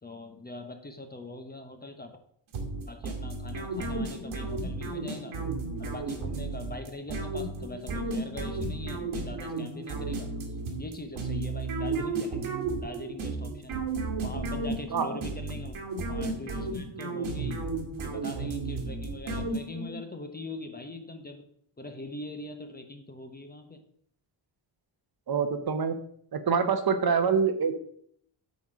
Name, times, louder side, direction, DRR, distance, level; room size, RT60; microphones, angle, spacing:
voice 1, 0.0-2.2 2.9-5.4 5.8-10.3 10.8-12.5 12.8-15.8 16.1-17.7 18.0-21.5 21.8-23.8, left 2 dB, 20° left, 7 dB, 0.8 m, -42 dB
sound 1, 2.5-20.0, right 3 dB, 90° right, 1.8 m, -33 dB
voice 2, 25.3-26.0 26.3-27.7, right 6 dB, 50° right, 9 dB, 0.9 m, -25 dB
8.2 x 4.3 x 6.1 m, 0.66 s
wide cardioid pair, 125°, 48 cm